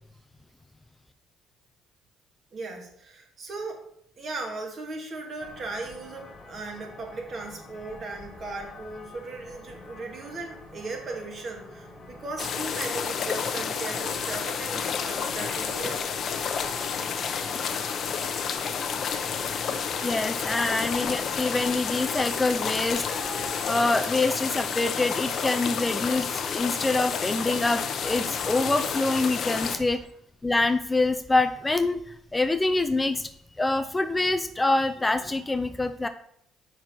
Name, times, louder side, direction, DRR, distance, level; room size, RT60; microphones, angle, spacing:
voice 1, 2.5-3.9 4.2-16.0 20.3-20.4 20.7-21.0 29.7-29.9, right 3 dB, 50° right, 1 dB, 2.0 m, -37 dB
sound 1, 5.4-23.7, left 2 dB, 35° left, 1.5 m, -46 dB
sound 2, 12.4-29.8, left 6 dB, 55° left, 0.8 m, -30 dB
voice 2, 20.0-30.0 30.4-32.0 32.3-33.3 33.6-36.1, left 2 dB, 15° left, 9 dB, 0.5 m, -25 dB
5.8 x 4.6 x 6.2 m, 0.69 s
supercardioid pair, 75°, 0 cm